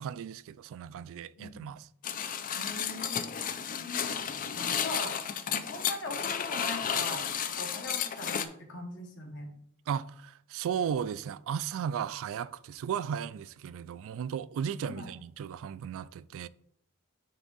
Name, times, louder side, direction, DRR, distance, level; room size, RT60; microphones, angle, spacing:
voice 1, 0.0-1.9 9.9-16.5, right 8 dB, 65° right, 0.3 m, -35 dB
voice 2, 1.4-1.7 2.5-3.4 3.7-4.2 4.5-5.2 5.5-9.5 14.8-15.1, left 2 dB, 55° left, 1.4 m, -41 dB
sound 1, 2.0-8.5, left 8 dB, 40° left, 0.4 m, -33 dB
9.2 x 3.6 x 4.0 m
head